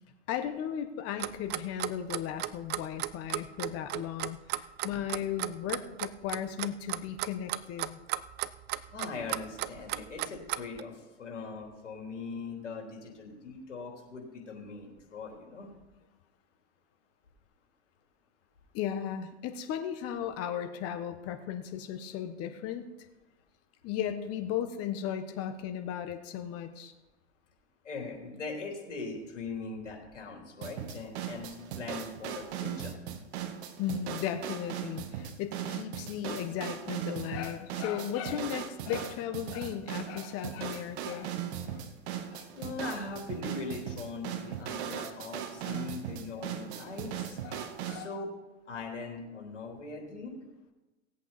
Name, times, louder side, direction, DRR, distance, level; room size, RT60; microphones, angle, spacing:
voice 1, 0.3-8.0 18.7-22.8 23.8-26.9 33.8-41.3 41.6-41.8 42.3-42.5 45.0-45.1 45.6-45.9 47.4-48.1, left 9 dB, 40° left, 8 dB, 1.2 m, -36 dB
Clock, 1.2-10.8, right 15 dB, 30° right, 0.5 m, -34 dB
voice 2, 8.9-15.7 27.8-31.5 31.8-33.0 42.5-47.4 47.8-48.3 48.7-50.3, left 4 dB, 90° left, 0 dB, 3.6 m, -41 dB
sound 1, 30.6-48.1, right 9 dB, 65° right, 1.4 m, -38 dB
18.0 x 8.2 x 4.1 m, 1.1 s
hypercardioid pair, 105°, 35 cm